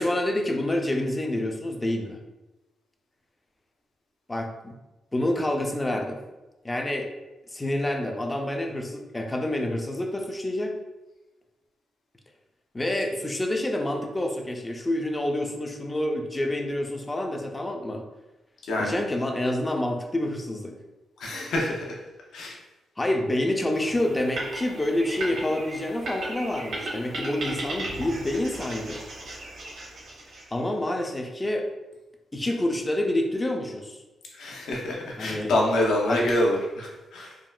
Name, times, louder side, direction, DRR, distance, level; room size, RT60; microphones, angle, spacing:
voice 1, 0.0-2.2 4.3-4.7 5.1-6.2 6.6-7.1 7.5-10.7 12.7-18.0 18.8-20.8 23.0-29.0 30.5-31.7 32.3-34.0 35.2-35.5 36.1-36.2, left 1 dB, 15° left, 2 dB, 0.3 m, -28 dB
voice 2, 18.6-19.0 21.2-22.0 22.3-22.6 34.3-37.4, left 1 dB, 85° left, -2 dB, 0.7 m, -26 dB
sound 1, 23.7-30.7, right 1 dB, 70° right, 0.9 m, -36 dB
3.5 x 2.2 x 2.3 m, 1.1 s
wide cardioid pair, 165°, 0 cm